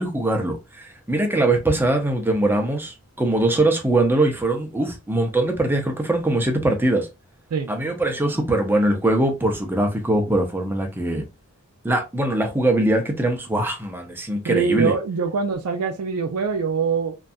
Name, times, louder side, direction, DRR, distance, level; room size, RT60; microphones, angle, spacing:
voice 1, 0.0-7.1 7.7-11.3 11.8-14.9, right 1 dB, 10° right, 0.4 m, -22 dB
voice 2, 14.4-17.2, right 5 dB, 75° right, 0.4 m, -23 dB
2.6 x 2.2 x 2.3 m
head